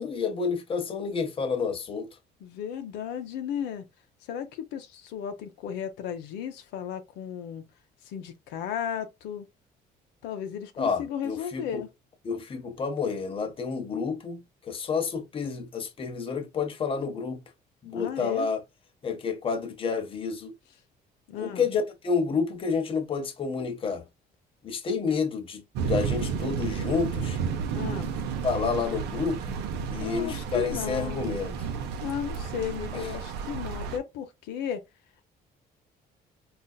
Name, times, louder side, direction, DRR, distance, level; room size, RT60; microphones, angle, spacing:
voice 1, 0.0-2.1 10.8-11.8 12.2-17.4 17.8-18.6 19.0-20.5 21.3-24.1 24.6-27.4 28.4-29.6 29.9-31.7 32.9-33.1, left 5 dB, 30° left, 0.7 m, -29 dB
voice 2, 2.4-3.8 4.3-7.7 8.1-9.5 10.2-11.9 17.9-18.5 21.3-21.7 27.7-28.1 30.0-31.3 32.0-34.8, left 8 dB, 90° left, 0.6 m, -35 dB
sound 1, 25.8-34.0, right 6 dB, 85° right, 0.5 m, -32 dB
3.9 x 2.4 x 2.2 m
cardioid pair, 110°, 17 cm